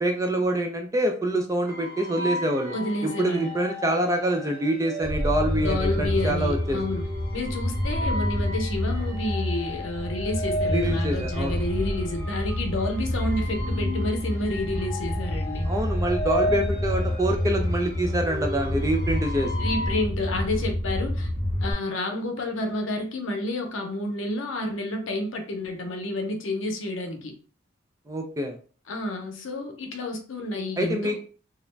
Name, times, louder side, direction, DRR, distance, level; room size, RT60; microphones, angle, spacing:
voice 1, 0.0-2.7 3.0-6.8 10.7-11.6 15.7-19.6 28.1-28.6 30.8-31.2, right 1 dB, 15° right, 0.3 m, -26 dB
sound 1, 1.7-20.0, left 1 dB, 10° left, 0.8 m, -35 dB
voice 2, 2.7-3.6 5.6-7.1 7.3-15.7 19.6-21.3 21.6-27.3 28.9-31.2, left 2 dB, 75° left, 0.6 m, -30 dB
sound 2, 5.0-21.7, left 1 dB, 40° right, 0.7 m, -28 dB
2.4 x 2.1 x 3.1 m
head